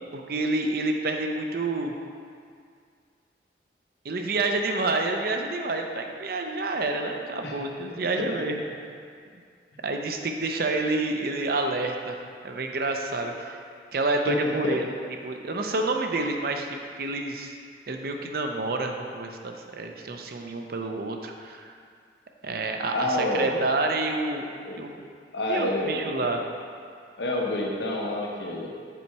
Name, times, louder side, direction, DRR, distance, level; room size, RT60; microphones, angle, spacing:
voice 1, 0.1-2.0 4.0-8.6 9.8-13.6 13.9-14.8 15.2-17.6 17.9-21.8 22.4-24.5 24.8-25.0 25.5-26.4, right 2 dB, 55° right, 4 dB, 0.6 m, -28 dB
voice 2, 14.3-14.8 22.9-23.6 24.6-24.8 25.3-26.3 27.2-28.7, left 1 dB, 80° left, -2 dB, 1.0 m, -28 dB
6.9 x 4.2 x 4.7 m, 2.2 s
head